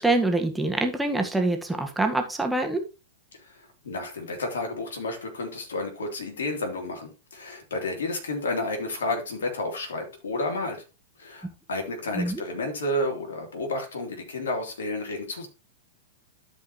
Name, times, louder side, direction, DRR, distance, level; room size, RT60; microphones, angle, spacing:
voice 1, 0.0-2.8 12.2-12.4, right 2 dB, 5° right, 1.9 m, -25 dB
voice 2, 3.4-10.8 11.2-15.5, left 2 dB, 70° left, 3.2 m, -31 dB
12.5 x 5.4 x 3.0 m
figure-of-eight pair, 100°, 0 cm